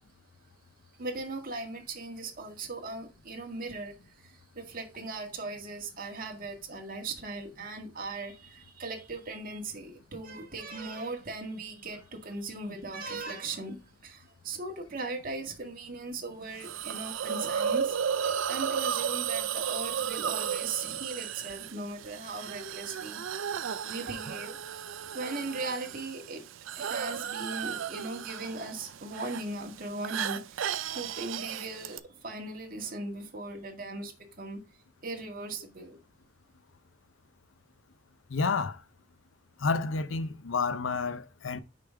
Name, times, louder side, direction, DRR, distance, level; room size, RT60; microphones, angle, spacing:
voice 1, 1.0-23.2 23.5-26.4 26.8-34.6 35.0-36.0, right 3 dB, 45° right, 1.8 m, -39 dB
Hiss, 16.6-32.0, right 8 dB, 80° right, 0.5 m, -34 dB
voice 2, 38.3-38.8 39.6-41.6, left 4 dB, 80° left, 0.6 m, -30 dB
6.6 x 5.3 x 3.6 m
head